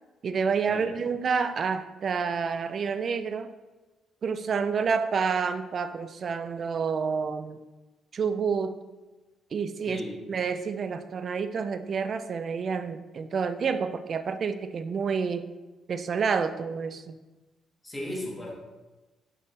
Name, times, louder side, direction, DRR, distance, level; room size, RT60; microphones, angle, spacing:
voice 1, 0.2-3.5 4.2-7.6 8.1-8.8 9.5-10.0 10.3-15.5 15.9-17.2, right 5 dB, 50° right, 10 dB, 0.4 m, -29 dB
voice 2, 17.8-18.5, left 1 dB, 15° left, -3 dB, 1.6 m, -36 dB
5.5 x 5.3 x 3.3 m, 1.1 s
cardioid pair, 90°, 0 cm